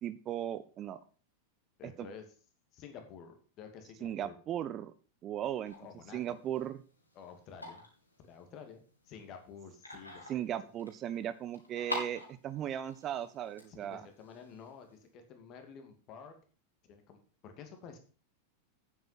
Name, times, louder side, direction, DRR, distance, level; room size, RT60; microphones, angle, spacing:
voice 1, 0.0-1.0 1.8-2.1 4.0-4.9 5.2-5.7 6.1-6.8 10.3-14.1, right 10 dB, 30° right, 14 dB, 0.6 m, -37 dB
voice 2, 1.8-2.3 2.7-4.3 5.8-6.4 7.1-7.9 8.2-10.6 13.7-16.3 16.9-18.0, left 6 dB, 35° left, 5 dB, 2.5 m, -51 dB
sound 1, 5.7-15.1, left 1 dB, 85° left, 3.2 m, -47 dB
9.3 x 7.9 x 5.8 m, 0.38 s
figure-of-eight pair, 90°, 0 cm